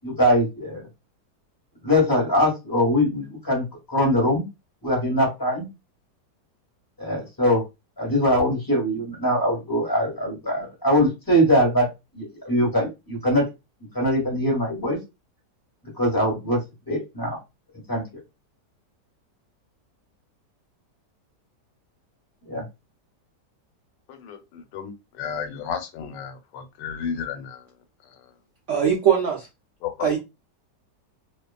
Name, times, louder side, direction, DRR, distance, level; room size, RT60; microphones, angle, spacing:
voice 1, 0.0-0.9 1.8-4.4 4.8-5.7 7.0-7.6 8.0-11.9 12.1-13.4 13.9-15.0 16.0-16.6 16.9-17.4 17.9-18.1 22.5-22.6, equal, 15° left, 1.0 m, -22 dB
voice 2, 24.7-27.6 29.8-29.9, left 7 dB, 90° left, 1.3 m, -32 dB
voice 3, 28.7-29.5 30.0-30.2, right 8 dB, 65° right, 0.7 m, -21 dB
2.6 x 2.4 x 2.3 m
omnidirectional pair, 1.9 m